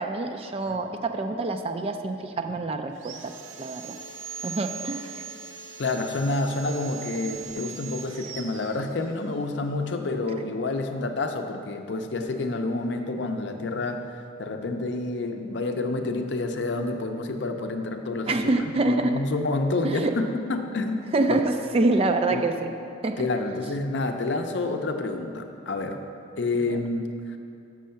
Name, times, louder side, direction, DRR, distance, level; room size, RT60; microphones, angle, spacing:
voice 1, 0.0-3.3 3.6-4.0 4.4-5.2 18.3-19.1 19.8-20.1 21.1-22.7 23.0-23.3 23.6-23.7 26.7-26.8, right 2 dB, 30° right, 6 dB, 0.3 m, -26 dB
Sawing, 2.9-9.4, right 6 dB, 85° right, 0.5 m, -40 dB
voice 2, 5.8-14.1 14.4-18.5 18.9-21.4 22.3-22.4 23.2-26.0 26.4-27.4, left 2 dB, 65° left, 5 dB, 0.5 m, -28 dB
6.4 x 6.2 x 5.6 m, 2.6 s
head